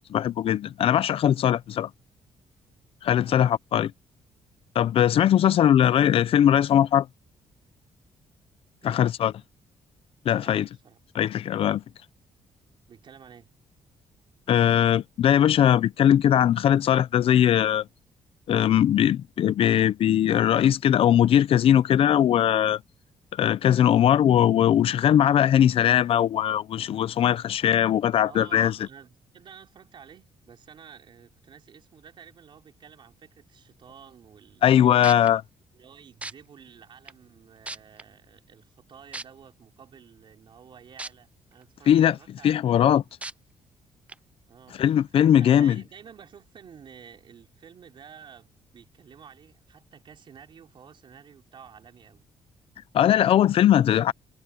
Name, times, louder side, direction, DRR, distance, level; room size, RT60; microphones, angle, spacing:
voice 1, 0.0-1.9 3.0-3.9 4.7-7.1 8.8-9.3 10.2-10.7 11.1-11.8 14.5-17.8 18.5-22.8 23.3-28.8 34.6-35.4 41.9-42.2 42.4-43.0 44.8-45.8 52.9-54.1, left 10 dB, 55° left, 0.6 m, -20 dB
voice 2, 3.1-3.5 8.8-9.1 10.4-11.0 12.9-13.5 28.2-34.7 35.7-42.5 42.8-43.1 44.5-52.3, right 7 dB, 45° right, 4.5 m, -51 dB
sound 1, 35.0-35.3 36.2-36.3 37.1-37.2 37.7-38.0 39.1-39.2 41.0-41.1 41.6-41.7 43.2-43.3 44.1-44.2, right 2 dB, 10° right, 0.4 m, -35 dB
cardioid pair, 145°, 12 cm